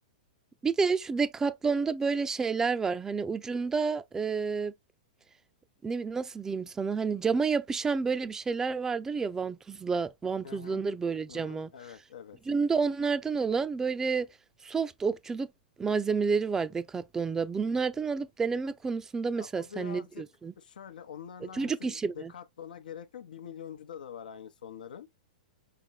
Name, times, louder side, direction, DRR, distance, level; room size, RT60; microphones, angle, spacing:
voice 1, 0.6-4.7 5.8-11.7 12.5-14.3 14.6-15.5 15.8-20.5 21.5-22.3, right 5 dB, 10° right, 0.5 m, -30 dB
voice 2, 10.4-10.8 11.3-12.4 19.3-20.3 20.6-25.1, left 8 dB, 80° left, 0.8 m, -45 dB
5.9 x 2.1 x 3.9 m
hypercardioid pair, 135°, 5 cm